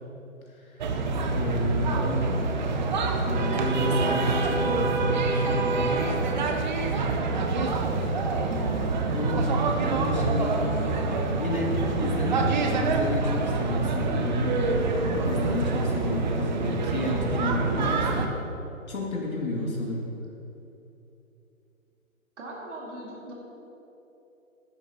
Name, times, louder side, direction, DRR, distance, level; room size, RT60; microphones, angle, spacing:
voice 1, 0.6-1.0 1.3-2.6 3.3-6.0 9.1-9.4 9.7-10.7 11.4-11.7 11.9-14.8 15.2-18.2 18.9-20.1, left 1 dB, 85° left, -3 dB, 2.6 m, -31 dB
sound 1, 0.8-18.3, right 3 dB, 35° right, 0.8 m, -26 dB
voice 2, 8.5-8.9 10.6-11.3 22.4-23.3, right 1 dB, 55° right, -3 dB, 2.4 m, -38 dB
13.5 x 10.5 x 2.9 m, 2.9 s
figure-of-eight pair, 145°, 41 cm